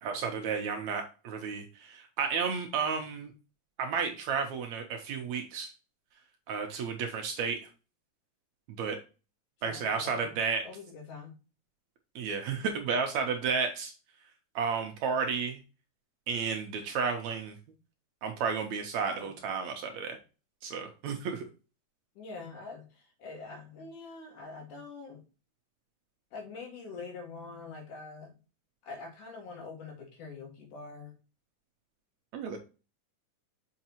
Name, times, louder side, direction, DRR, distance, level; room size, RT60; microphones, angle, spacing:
voice 1, 0.0-3.3 3.8-5.7 6.5-7.7 8.8-9.0 9.6-10.6 12.2-13.9 14.6-15.6 16.3-17.6 18.2-20.2 20.6-21.5 32.3-32.6, right 5 dB, 70° right, 4 dB, 1.9 m, -32 dB
voice 2, 9.6-10.3 10.6-11.3 19.2-19.3 22.2-25.2 26.3-28.4 28.8-31.2, left 4 dB, 70° left, 1 dB, 3.3 m, -44 dB
6.5 x 5.7 x 2.9 m, 0.32 s
omnidirectional pair, 3.8 m